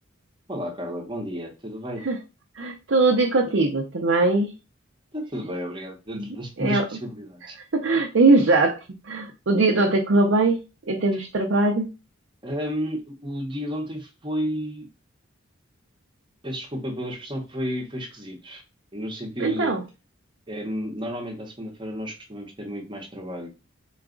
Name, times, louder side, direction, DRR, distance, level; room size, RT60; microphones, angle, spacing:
voice 1, 0.5-2.0 5.1-7.6 12.4-14.9 16.4-18.6 18.9-19.8 20.5-23.5, equal, 25° right, 0 dB, 0.9 m, -32 dB
voice 2, 2.6-4.5 6.1-6.3 6.6-6.8 7.7-8.8 9.1-10.6 10.9-11.9 19.4-19.8, right 3 dB, 60° right, 1 dB, 0.6 m, -20 dB
3.9 x 2.3 x 3.8 m, 0.29 s
head